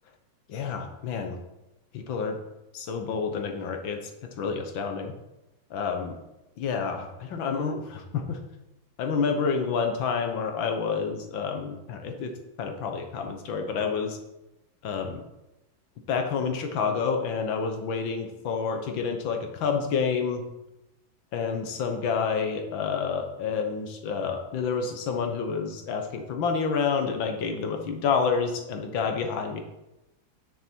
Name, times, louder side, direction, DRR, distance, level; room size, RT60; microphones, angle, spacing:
voice 1, 0.5-1.4 1.9-2.4 2.7-4.0 4.4-5.1 5.7-6.2 6.6-8.4 9.0-12.3 12.6-14.2 14.8-15.2 16.1-20.4 21.3-29.6, left 5 dB, 75° left, 4 dB, 1.8 m, -29 dB
9.8 x 5.9 x 4.5 m, 0.95 s
omnidirectional pair, 2.2 m